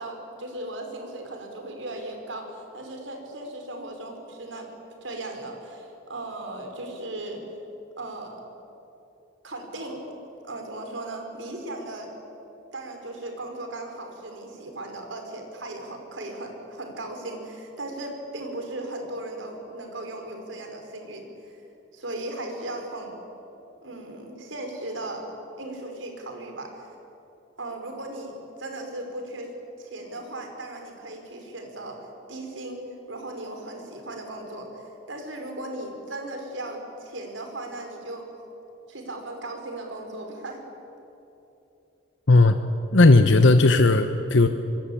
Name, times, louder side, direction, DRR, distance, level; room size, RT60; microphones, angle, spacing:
voice 1, 0.0-4.7 5.0-7.4 8.0-8.4 9.4-10.1 10.4-12.1 12.7-21.6 21.9-23.2 23.8-25.3 25.6-26.9 27.6-29.5 29.8-32.0 32.3-32.8 33.1-38.3 38.9-40.6, right 1 dB, 85° right, 4 dB, 5.0 m, -37 dB
voice 2, 42.3-42.6 42.9-44.5, left 2 dB, 75° left, 8 dB, 1.0 m, -16 dB
25.5 x 22.5 x 8.7 m, 2.9 s
head